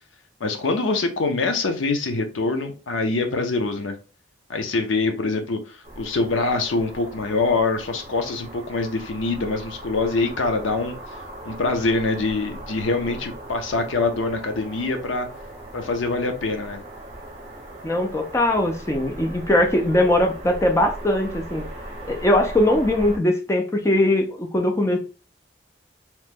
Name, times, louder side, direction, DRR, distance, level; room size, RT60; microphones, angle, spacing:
voice 1, 0.4-4.0 4.5-11.0 11.4-15.3 15.7-16.8, left 3 dB, 90° left, 6 dB, 0.6 m, -24 dB
sound 1, 5.8-23.2, right 1 dB, 35° right, 0.7 m, -39 dB
voice 2, 17.8-21.7 22.1-25.0, left 1 dB, 15° left, 2 dB, 0.4 m, -20 dB
2.9 x 2.1 x 3.4 m, 0.34 s
head